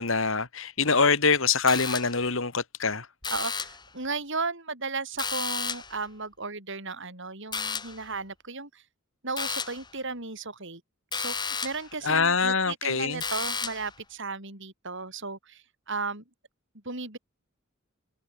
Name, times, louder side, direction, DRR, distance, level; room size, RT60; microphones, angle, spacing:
voice 1, 0.0-3.1 12.0-13.2, left 4 dB, 65° left, 2.8 m, -24 dB
sound 1, 1.7-2.3 3.2-3.9 5.2-6.0 7.5-8.1 9.4-9.9 11.1-11.9 13.2-13.9, left 5 dB, 20° left, 1.6 m, -33 dB
voice 2, 3.3-8.8 9.2-10.8 11.2-16.2 16.8-17.2, right 4 dB, 60° right, 7.3 m, -35 dB
open air
head